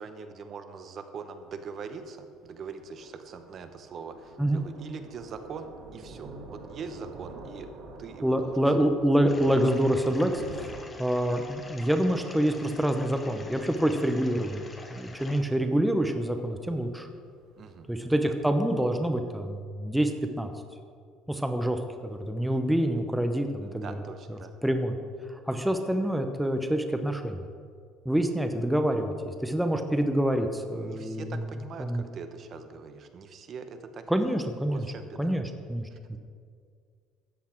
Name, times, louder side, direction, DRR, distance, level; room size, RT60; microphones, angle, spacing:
voice 1, 0.0-8.9 11.3-11.4 17.6-17.9 23.6-24.5 30.7-34.4 34.7-35.4 35.9-36.0, right 5 dB, 40° right, 8 dB, 0.9 m, -42 dB
Thunder, 1.4-18.3, right 3 dB, 65° right, 1.9 m, -48 dB
voice 2, 8.2-17.1 17.9-20.1 20.4-20.5 21.3-24.0 24.3-25.0 25.5-27.4 28.0-31.4 31.8-32.0 34.1-34.9 35.2-35.4 35.7-36.2, right 1 dB, 5° right, 6 dB, 0.7 m, -27 dB
sound 1, 9.3-15.4, left 2 dB, 15° left, 1.2 m, -47 dB
13.5 x 8.2 x 4.5 m, 2.1 s
cardioid pair, 135°, 0 cm